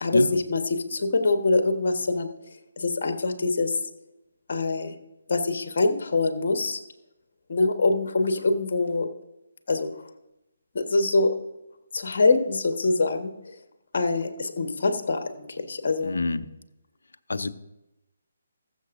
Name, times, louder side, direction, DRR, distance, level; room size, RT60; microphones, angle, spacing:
voice 1, 0.0-2.3 2.8-3.8 4.5-4.9 5.3-6.8 7.5-9.1 9.7-9.9 10.7-11.3 11.9-13.3 13.9-16.2, left 3 dB, 50° left, 6 dB, 1.3 m, -24 dB
voice 2, 16.0-16.5 17.3-17.5, left 3 dB, 65° left, 9 dB, 0.6 m, -27 dB
21.5 x 7.1 x 2.6 m, 0.93 s
figure-of-eight pair, 145°, 0 cm